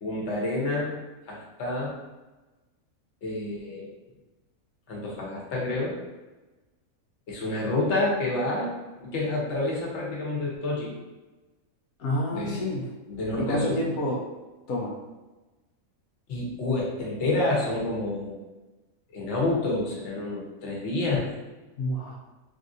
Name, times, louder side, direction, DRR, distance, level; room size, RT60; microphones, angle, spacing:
voice 1, 0.0-1.0 1.3-1.9 3.2-3.9 4.9-6.0 7.3-8.7 9.0-11.0 12.3-12.7 13.1-13.8 16.3-18.4 19.1-21.3, left 2 dB, 55° left, -3 dB, 1.1 m, -28 dB
voice 2, 12.0-12.9 13.4-14.2 14.7-14.9 21.8-22.2, left 1 dB, 85° left, -2 dB, 1.1 m, -29 dB
3.4 x 2.5 x 2.5 m, 1.1 s
omnidirectional pair, 1.5 m